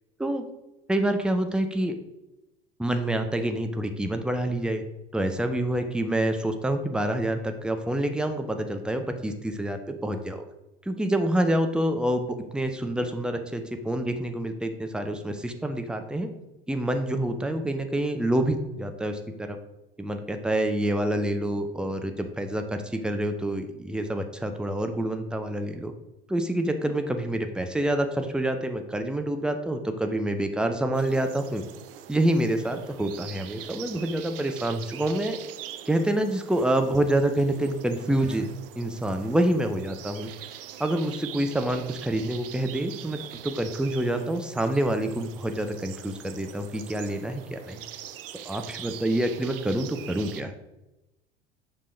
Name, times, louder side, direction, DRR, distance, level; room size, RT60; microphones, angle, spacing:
voice 1, 0.9-2.0 2.8-4.8 5.1-10.4 10.9-16.3 16.7-19.6 20.0-25.9 26.3-31.6 32.1-35.4 35.9-38.5 38.8-40.3 40.8-47.8 48.5-50.5, right 1 dB, 5° right, 7 dB, 0.6 m, -27 dB
sound 1, 30.9-50.4, right 11 dB, 65° right, 0.5 m, -43 dB
6.5 x 5.4 x 3.3 m, 0.99 s
figure-of-eight pair, 65°, 30 cm